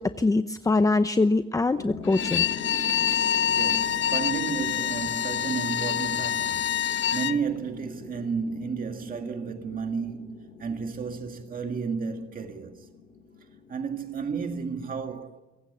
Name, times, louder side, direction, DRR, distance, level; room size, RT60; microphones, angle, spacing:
voice 1, 0.0-2.4, left 3 dB, 15° left, 0.7 m, -23 dB
sound 1, 1.7-14.1, left 5 dB, 60° left, 3.4 m, -42 dB
Bowed string instrument, 2.0-7.4, left 10 dB, 80° left, 0.8 m, -26 dB
voice 2, 3.5-12.9 13.7-15.4, right 5 dB, 45° right, 2.1 m, -32 dB
25.5 x 16.0 x 9.8 m
cardioid pair, 135°, 19 cm